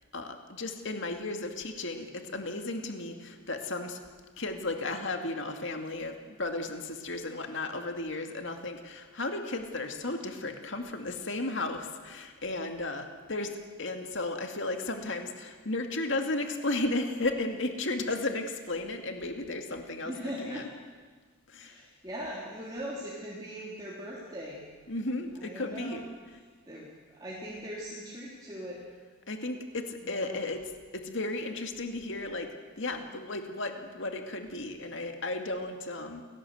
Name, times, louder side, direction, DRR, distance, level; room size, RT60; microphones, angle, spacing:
voice 1, 0.1-4.0 4.4-13.5 13.8-20.1 20.4-20.7 21.5-21.8 24.9-26.0 29.3-30.6 30.9-32.5 32.8-36.2, left 2 dB, 55° left, 5 dB, 2.4 m, -34 dB
voice 2, 20.0-20.7 21.6-24.7 25.3-26.1 26.7-28.8 30.0-30.4, equal, 20° right, -5 dB, 3.2 m, -40 dB
29.0 x 18.0 x 8.0 m, 1.5 s
head